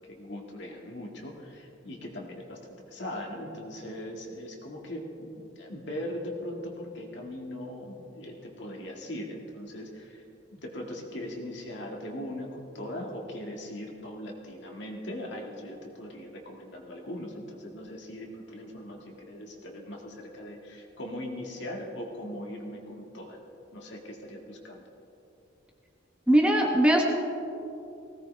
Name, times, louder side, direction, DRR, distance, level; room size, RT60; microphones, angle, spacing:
voice 1, 0.0-2.6 2.9-10.2 10.5-23.4 23.7-24.8, left 1 dB, 60° left, 0 dB, 2.0 m, -40 dB
voice 2, 26.3-27.0, right 1 dB, 5° right, 0 dB, 1.1 m, -20 dB
19.5 x 17.0 x 3.4 m, 2.8 s
head